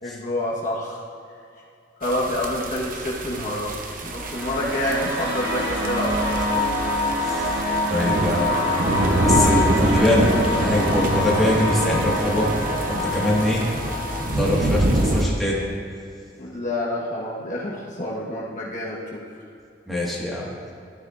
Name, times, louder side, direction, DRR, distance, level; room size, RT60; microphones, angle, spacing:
voice 1, 0.0-1.0 2.0-3.8 4.0-6.7 15.0-15.2 16.4-19.2, left 1 dB, 45° left, -4 dB, 1.2 m, -28 dB
sound 1, 2.0-15.2, right 1 dB, 50° right, 0.8 m, -26 dB
sound 2, 4.1-15.1, left 1 dB, 90° right, 1.7 m, -25 dB
voice 2, 7.2-7.6 7.9-8.5 9.2-13.6 14.3-15.6 19.9-20.5, left 1 dB, ahead, -6 dB, 1.6 m, -23 dB
12.0 x 9.9 x 2.5 m, 2.5 s
head